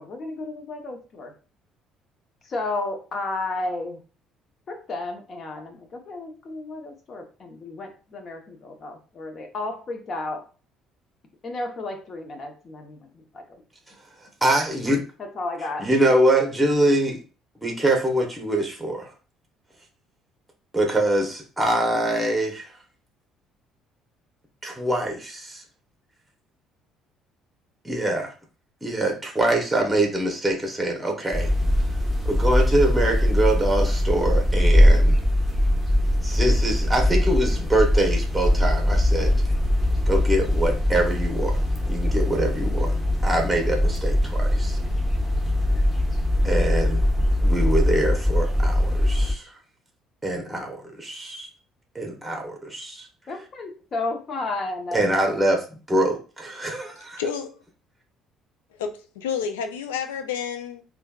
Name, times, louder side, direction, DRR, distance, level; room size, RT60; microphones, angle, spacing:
voice 1, 0.0-1.3 2.4-4.0 4.7-10.4 11.4-13.6 15.2-15.9 53.3-55.0, left 2 dB, 45° left, 4 dB, 0.9 m, -32 dB
voice 2, 14.4-15.0 15.8-17.2 17.6-19.1 20.7-22.7 24.6-25.6 27.8-28.3 28.8-31.5 32.3-35.2 36.2-39.3 40.1-42.9 43.2-44.8 46.4-49.5 50.2-51.5 51.9-53.1 54.9-57.2, right 1 dB, 10° right, 1 dB, 0.9 m, -24 dB
sound 1, 31.3-49.3, left 1 dB, 10° left, 1.2 m, -21 dB
voice 3, 57.2-57.6 58.7-60.8, left 7 dB, 80° left, 7 dB, 0.4 m, -30 dB
3.2 x 2.3 x 2.3 m, 0.37 s
hypercardioid pair, 55°, 0 cm